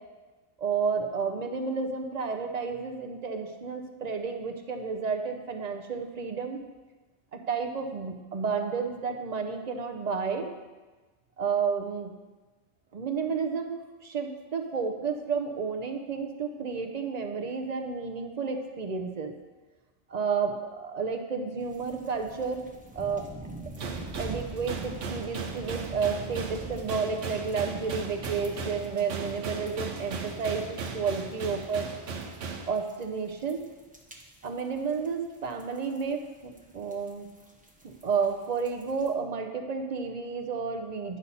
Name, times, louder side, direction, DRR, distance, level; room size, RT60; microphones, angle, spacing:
voice 1, 0.6-6.6 7.3-10.5 11.4-12.1 12.9-13.8 14.0-19.3 20.1-22.6 22.9-23.3 24.2-31.9 32.7-33.6 34.4-37.3 37.8-41.2, right 5 dB, 40° right, 4 dB, 0.7 m, -31 dB
sound 1, 21.6-39.1, right 2 dB, 10° right, 0.7 m, -47 dB
sound 2, 23.8-32.7, right 4 dB, 85° right, 1.1 m, -37 dB
9.8 x 5.6 x 4.1 m, 1.2 s
omnidirectional pair, 1.2 m